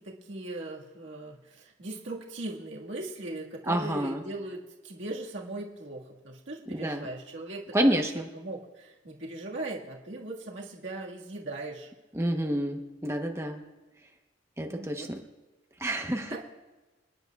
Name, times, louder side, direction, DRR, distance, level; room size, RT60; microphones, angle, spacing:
voice 1, 0.0-7.6 7.9-8.0 8.3-11.9 14.6-15.1 16.3-16.4, right 2 dB, 70° right, -2 dB, 1.7 m, -39 dB
voice 2, 3.7-4.2 6.7-7.1 7.7-8.2 12.1-13.6 14.6-15.2 15.8-16.3, right 1 dB, 15° right, 3 dB, 0.9 m, -28 dB
28.0 x 11.0 x 2.3 m, 1.2 s
head